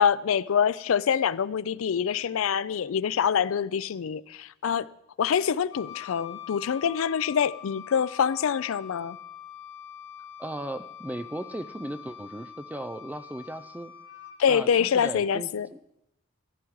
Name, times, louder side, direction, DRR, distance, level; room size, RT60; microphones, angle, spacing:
voice 1, 0.0-4.9 5.2-9.2 14.4-15.7, left 7 dB, 80° left, 0.4 m, -25 dB
Wind instrument woodwind instrument, 5.7-14.4, left 10 dB, 60° left, 1.9 m, -44 dB
voice 2, 10.4-13.9 14.5-15.8, right 1 dB, 10° right, 0.4 m, -37 dB
15.0 x 11.0 x 4.7 m
head